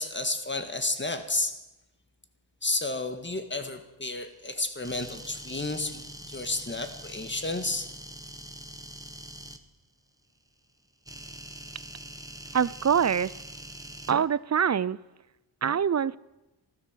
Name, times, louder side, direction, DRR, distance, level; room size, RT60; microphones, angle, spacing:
voice 1, 0.0-1.5 2.6-7.9, left 2 dB, 25° left, 8 dB, 1.8 m, -31 dB
sound 1, 4.8-9.6 11.1-14.1, right 1 dB, 5° right, 1.2 m, -44 dB
voice 2, 12.5-13.3 14.1-15.0 15.6-16.2, right 7 dB, 35° right, 20 dB, 0.4 m, -24 dB
14.0 x 13.0 x 7.4 m, 0.98 s
wide cardioid pair, 70°, 47 cm